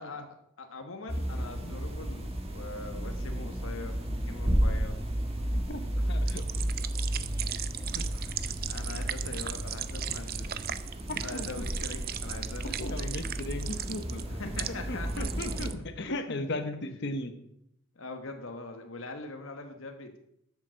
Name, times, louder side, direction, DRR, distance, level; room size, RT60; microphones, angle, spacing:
voice 1, 0.0-4.0 4.3-5.0 5.9-6.1 7.8-8.3 8.7-10.5 11.2-13.3 13.7-13.9 14.3-15.3 15.9-16.4 18.0-20.2, left 3 dB, 75° left, 5 dB, 1.2 m, -42 dB
sound 1, 1.1-15.7, equal, 30° right, 1.6 m, -33 dB
voice 2, 5.5-5.8 6.1-6.8 7.2-7.3 11.1-11.7 12.8-14.4 14.9-17.3, left 2 dB, 55° left, 8 dB, 1.0 m, -37 dB
sound 2, 6.3-14.7 15.0-15.8, right 11 dB, 45° right, 0.5 m, -38 dB
12.0 x 7.3 x 6.2 m, 0.76 s
head